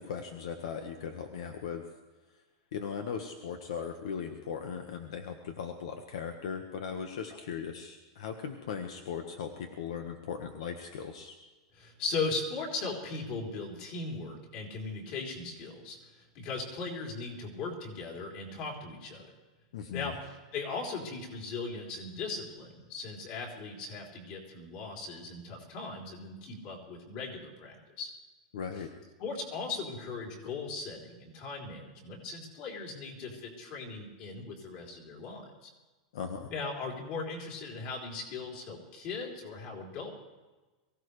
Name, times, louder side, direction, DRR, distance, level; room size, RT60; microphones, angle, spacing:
voice 1, 0.0-1.9 2.7-11.4 19.7-20.1 28.5-28.9 36.1-36.5, left 7 dB, 70° left, 5 dB, 1.4 m, -38 dB
voice 2, 11.7-19.3 19.9-28.1 29.2-35.7 36.5-40.1, left 3 dB, 35° left, -1 dB, 3.6 m, -38 dB
23.5 x 16.0 x 3.3 m, 1.2 s
supercardioid pair, 175°, 3 cm